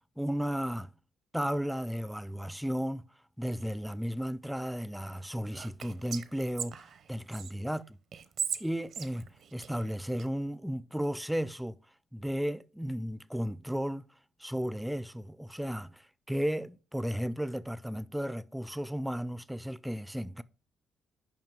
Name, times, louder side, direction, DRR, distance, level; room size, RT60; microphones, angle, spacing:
voice 1, 0.2-0.9 1.3-3.0 3.4-8.0 8.6-11.8 12.1-14.0 14.4-20.4, equal, 5° right, 0.5 m, -34 dB
Whispering, 5.5-7.5 8.1-10.3, right 7 dB, 65° right, 0.8 m, -39 dB
7.6 x 5.3 x 5.2 m
supercardioid pair, 70°, 0 cm